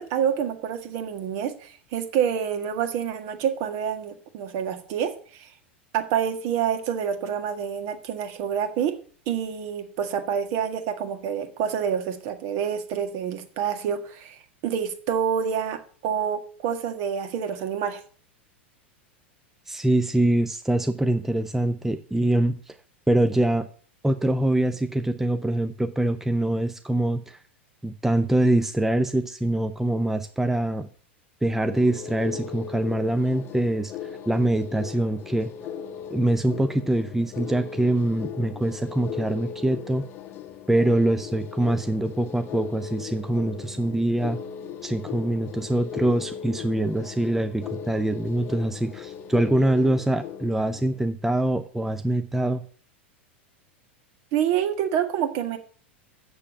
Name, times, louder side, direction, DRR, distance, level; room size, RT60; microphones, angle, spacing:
voice 1, 0.0-5.5 5.9-8.9 9.3-18.0 54.3-55.6, right 8 dB, 50° right, 8 dB, 1.7 m, -27 dB
voice 2, 19.7-22.8 23.1-23.7 24.0-27.4 27.8-30.9 31.4-33.9 34.3-35.5 36.1-40.0 40.7-44.4 44.8-52.6, right 1 dB, 5° right, 9 dB, 0.6 m, -24 dB
sound 1, 31.6-51.1, left 8 dB, 35° left, 0.9 m, -38 dB
7.1 x 6.7 x 7.1 m, 0.43 s
figure-of-eight pair, 95°, 6 cm